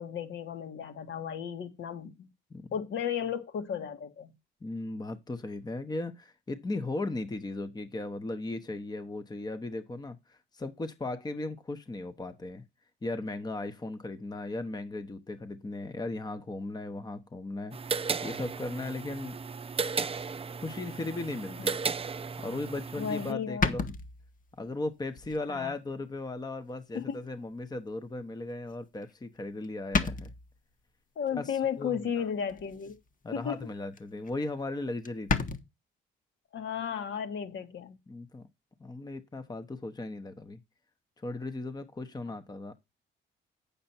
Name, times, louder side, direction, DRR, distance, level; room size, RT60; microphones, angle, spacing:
voice 1, 0.0-2.3 2.7-4.3 21.6-21.7 23.0-23.7 25.5-25.7 26.9-27.2 31.2-33.0 33.3-33.6 36.5-38.0 42.3-42.4, left 8 dB, 70° left, 2.0 m, -34 dB
voice 2, 4.6-12.6 13.0-19.3 20.6-21.8 22.4-23.9 24.6-30.3 31.3-32.3 33.2-35.4 38.1-38.4 38.8-40.6 41.2-42.7, left 2 dB, 20° left, 1.0 m, -37 dB
sound 1, 17.7-23.3, right 5 dB, 30° right, 0.6 m, -35 dB
sound 2, 23.6-24.5 25.2-25.4 25.9-26.0 27.3-27.4 29.0-29.4 29.6-29.7 29.9-30.6 32.5-33.0 33.3-33.6 33.9-34.0 34.2-34.3 34.6-34.7 35.0-35.6, left 4 dB, 40° left, 1.4 m, -31 dB
8.5 x 6.8 x 4.3 m
cardioid pair, 90°, 20 cm